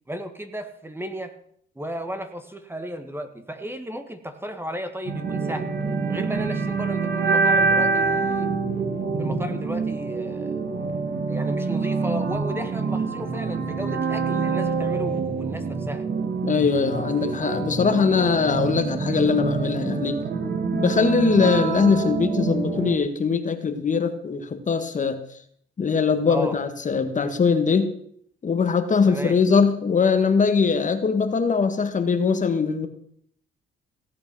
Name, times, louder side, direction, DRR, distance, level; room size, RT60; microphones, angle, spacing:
voice 1, 0.1-1.3 1.7-5.7 6.1-8.5 9.2-10.6 11.3-16.1 26.3-26.5 29.1-29.3, equal, 10° right, 8 dB, 1.6 m, -34 dB
sound 1, 5.0-23.0, right 4 dB, 55° right, 2.2 m, -26 dB
voice 2, 16.4-20.2 20.7-25.2 25.8-27.9 28.4-32.9, left 5 dB, 40° left, 8 dB, 1.6 m, -21 dB
16.5 x 8.7 x 6.1 m, 0.66 s
cardioid pair, 90°, 20 cm